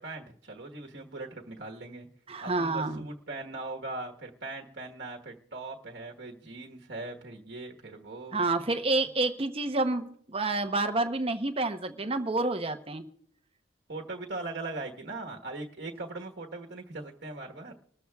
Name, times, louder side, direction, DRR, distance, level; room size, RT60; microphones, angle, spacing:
voice 1, 0.0-2.1 2.4-8.4 13.9-17.7, right 2 dB, 60° right, 1 dB, 1.3 m, -40 dB
voice 2, 2.3-3.1 8.3-13.0, right 2 dB, 30° right, 7 dB, 0.7 m, -29 dB
25.0 x 13.5 x 2.3 m, 0.64 s
head